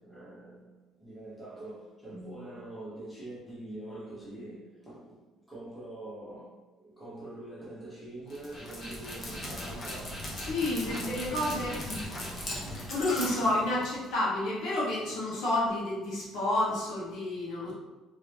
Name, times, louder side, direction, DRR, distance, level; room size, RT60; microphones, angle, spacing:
voice 1, 0.0-10.5 11.2-11.6, right 1 dB, 5° left, 0.9 m, -44 dB
Dog, 8.3-14.1, left 1 dB, 30° left, 0.8 m, -38 dB
voice 2, 10.5-12.2 12.6-17.7, left 1 dB, 60° left, 1.1 m, -30 dB
3.0 x 2.7 x 3.3 m
cardioid pair, 165°, 0 cm